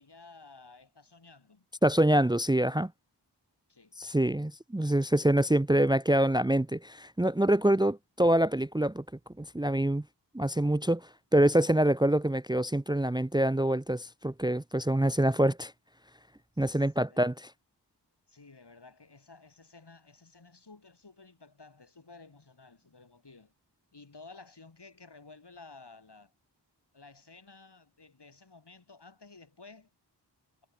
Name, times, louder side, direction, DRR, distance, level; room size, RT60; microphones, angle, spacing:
voice 1, 0.0-1.7 3.7-4.0 16.5-16.8 17.1-17.3 18.3-23.5 23.9-26.3 26.9-29.9, left 3 dB, 70° left, 5.6 m, -53 dB
voice 2, 1.8-2.9 4.0-9.0 9.4-10.0 10.3-15.7 16.6-17.5, right 1 dB, 10° right, 0.7 m, -25 dB
wide cardioid pair, 45°, 42 cm